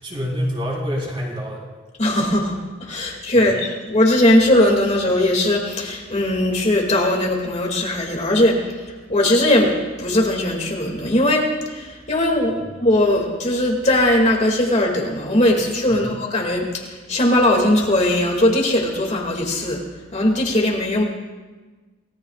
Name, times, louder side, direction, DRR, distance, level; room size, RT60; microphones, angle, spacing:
voice 1, 0.0-1.7 3.3-3.5 12.5-12.6 15.9-16.1, equal, 25° right, -3 dB, 4.0 m, -27 dB
voice 2, 2.0-19.8 20.1-21.0, left 1 dB, 35° left, 0 dB, 2.3 m, -19 dB
28.0 x 18.5 x 2.4 m, 1.3 s
head